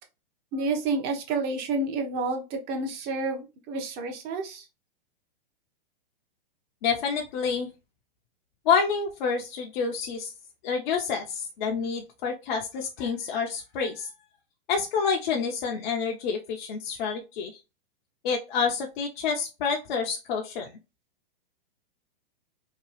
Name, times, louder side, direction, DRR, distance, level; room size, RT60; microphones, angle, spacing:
voice 1, 0.5-4.6, right 3 dB, 35° right, 4 dB, 0.8 m, -29 dB
voice 2, 6.8-7.7 8.7-10.3 10.6-14.1 14.7-17.5 18.2-20.7, left 6 dB, 55° left, 1 dB, 0.6 m, -28 dB
2.8 x 2.3 x 3.1 m, 0.28 s
hypercardioid pair, 125°, 29 cm